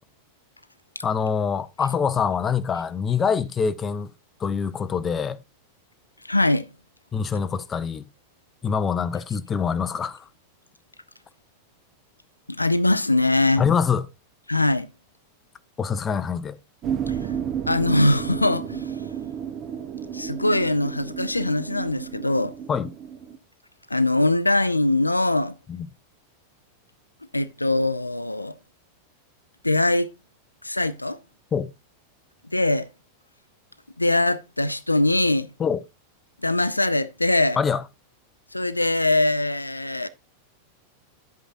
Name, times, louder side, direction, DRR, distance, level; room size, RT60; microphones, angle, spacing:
voice 1, 1.0-4.1 4.4-5.4 7.1-8.0 8.6-10.3 13.6-14.1 15.8-16.6 22.7-22.9 25.7-25.9 31.5-31.7 35.6-35.8 37.5-37.8, left 6 dB, 20° left, 0.6 m, -25 dB
voice 2, 6.2-6.7 12.5-13.6 14.5-14.9 17.1-17.2 17.7-19.0 20.1-22.5 23.9-25.5 27.3-28.5 29.6-30.1 30.6-31.2 32.5-32.9 34.0-35.5 36.4-37.6 38.5-40.1, left 2 dB, 85° left, 0.5 m, -22 dB
sound 1, 16.8-23.4, right 8 dB, 35° right, 1.0 m, -32 dB
10.5 x 8.0 x 2.6 m
figure-of-eight pair, 90°, 0 cm